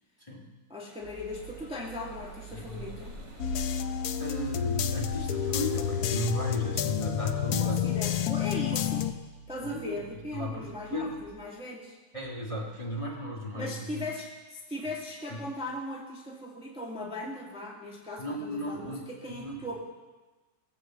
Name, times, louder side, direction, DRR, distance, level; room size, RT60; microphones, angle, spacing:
voice 1, 0.7-3.2 7.5-9.1 9.5-12.0 13.5-19.8, left 1 dB, 5° right, -2 dB, 1.5 m, -38 dB
sound 1, 1.0-6.1, right 3 dB, 60° right, 3.2 m, -47 dB
sound 2, 1.2-11.3, right 5 dB, 50° left, 2.0 m, -52 dB
voice 2, 2.5-2.9 4.2-8.3 8.7-8.9 9.6-10.0 10.3-11.2 12.1-14.1 15.3-15.4 18.2-19.0 19.3-19.6, left 1 dB, 15° left, -2 dB, 1.8 m, -35 dB
sound 3, 3.4-9.1, left 9 dB, 65° left, 1.0 m, -29 dB
19.5 x 8.0 x 7.3 m, 1.2 s
omnidirectional pair, 2.2 m